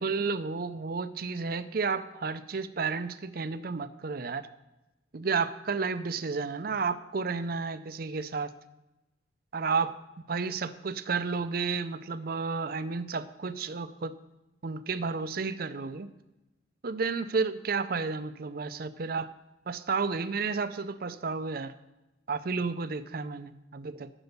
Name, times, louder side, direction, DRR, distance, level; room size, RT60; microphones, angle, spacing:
voice 1, 0.0-4.5 5.1-8.5 9.5-9.9 10.3-14.2 14.6-16.1 16.8-19.3 19.7-21.7 22.3-24.1, right 4 dB, 55° right, 11 dB, 0.6 m, -32 dB
11.0 x 7.9 x 6.7 m, 0.99 s
head